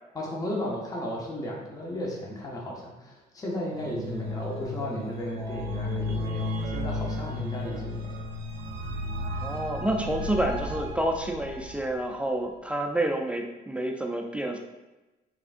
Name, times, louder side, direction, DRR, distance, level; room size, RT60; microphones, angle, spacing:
voice 1, 0.1-8.1, left 1 dB, 20° left, -2 dB, 0.7 m, -34 dB
sound 1, 3.6-11.9, left 1 dB, 85° right, 0.5 m, -34 dB
voice 2, 9.4-14.6, right 1 dB, 5° right, 2 dB, 0.3 m, -29 dB
3.6 x 3.5 x 2.5 m, 1.1 s
cardioid pair, 110°, 17 cm